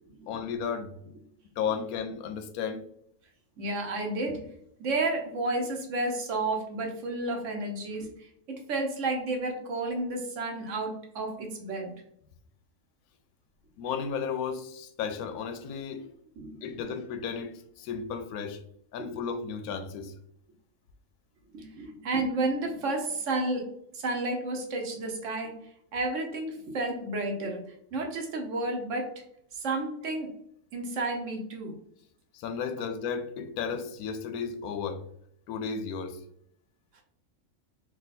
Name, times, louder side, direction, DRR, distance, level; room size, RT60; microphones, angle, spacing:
voice 1, 0.3-0.9 1.6-2.8 13.8-16.1 16.6-18.6 18.9-20.1 32.3-35.0 35.5-36.2, left 6 dB, 90° left, 1.1 m, -34 dB
voice 2, 3.6-4.5 4.8-11.9 16.4-16.9 19.0-19.2 21.5-23.7 23.9-29.2 29.5-30.3 30.7-31.7 36.9-37.0, right 2 dB, 65° right, 1.1 m, -32 dB
3.7 x 2.3 x 4.0 m
omnidirectional pair, 1.5 m